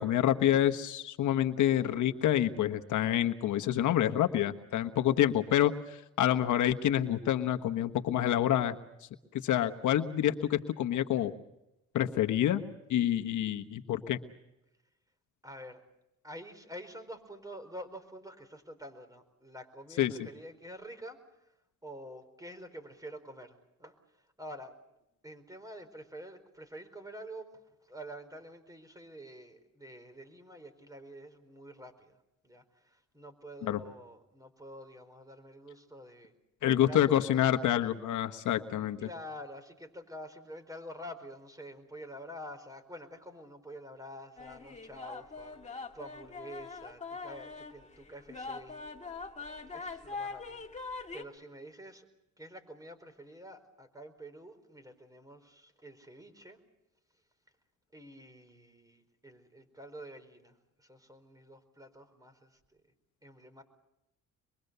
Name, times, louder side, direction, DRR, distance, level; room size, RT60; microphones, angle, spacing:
voice 1, 0.0-8.7 9.3-11.3 11.9-12.6 12.9-14.2 20.0-20.1 33.6-33.8 36.6-39.1, left 11 dB, 75° left, 7 dB, 1.4 m, -27 dB
voice 2, 15.4-15.8 16.2-21.5 21.8-24.8 25.2-36.3 36.6-37.4 39.0-48.9 49.4-49.5 49.7-52.1 52.4-56.6 57.9-62.8 63.2-63.6, equal, 10° right, 9 dB, 4.6 m, -48 dB
sound 1, 44.4-51.2, left 4 dB, 25° left, 2.5 m, -42 dB
25.0 x 23.0 x 6.8 m, 0.89 s
cardioid pair, 90°, 30 cm